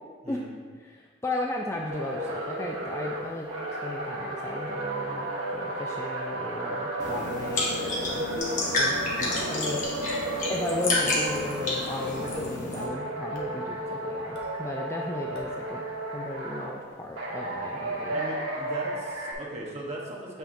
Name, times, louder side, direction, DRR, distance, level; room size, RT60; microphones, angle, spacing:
voice 1, 0.8-3.5 3.8-8.3 8.7-10.0 10.5-15.9 16.1-18.2, left 2 dB, 15° left, -1 dB, 0.3 m, -35 dB
sound 1, 1.9-12.4 12.7-16.7 17.2-19.3, right 1 dB, 85° right, 1.2 m, -33 dB
sound 2, 7.0-12.8, left 2 dB, 40° left, 1.2 m, -30 dB
sound 3, 8.4-8.8 9.3-9.7 10.3-10.7 11.3-11.7 12.4-12.7 13.3-13.6 14.3-14.6 15.3-15.6, left 1 dB, 65° left, 1.0 m, -40 dB
voice 2, 18.1-20.4, right 1 dB, 30° right, -3 dB, 1.0 m, -38 dB
7.1 x 5.7 x 2.6 m, 1.5 s
head